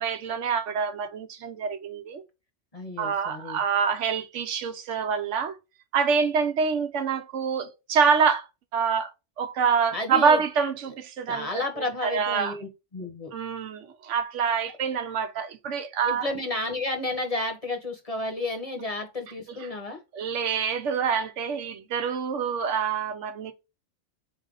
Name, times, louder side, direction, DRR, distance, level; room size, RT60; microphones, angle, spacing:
voice 1, 0.0-2.2 3.0-5.6 5.9-8.5 8.7-9.1 9.4-11.6 12.0-12.5 13.3-16.3 20.1-23.5, right 6 dB, 75° right, 1.0 m, -26 dB
voice 2, 2.7-3.6 9.9-10.4 11.3-13.3 16.1-20.0, left 2 dB, 35° left, 0.9 m, -32 dB
4.1 x 3.3 x 3.8 m
omnidirectional pair, 1.3 m